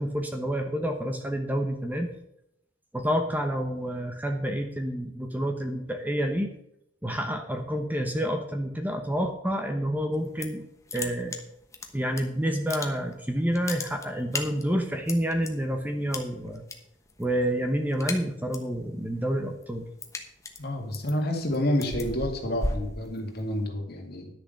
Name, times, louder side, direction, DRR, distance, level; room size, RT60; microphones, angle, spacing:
voice 1, 0.0-2.1 2.9-6.5 7.0-10.6 10.9-11.4 11.9-16.6 17.2-19.9, equal, 10° right, 4 dB, 0.9 m, -28 dB
sound 1, 10.1-10.6 10.9-12.2 12.5-13.2 13.5-15.5 16.1-16.8 17.1-17.4 17.7-18.7 19.1-23.7, left 2 dB, 15° left, 1.1 m, -35 dB
voice 2, 20.6-24.3, left 1 dB, 50° left, 2 dB, 2.2 m, -29 dB
10.5 x 6.8 x 6.5 m, 0.78 s
head